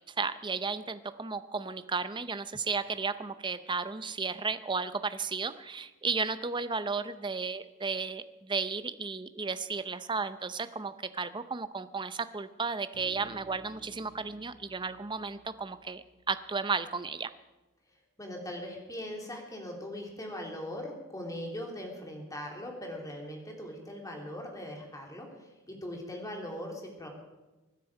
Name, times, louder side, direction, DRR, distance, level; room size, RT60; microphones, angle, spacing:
voice 1, 0.1-17.3, right 4 dB, 20° right, 12 dB, 0.6 m, -34 dB
Bass guitar, 12.9-16.6, right 2 dB, 85° left, 5.4 m, -56 dB
voice 2, 18.2-27.1, left 1 dB, 15° left, 1 dB, 2.9 m, -40 dB
24.0 x 10.0 x 4.8 m, 1.1 s
head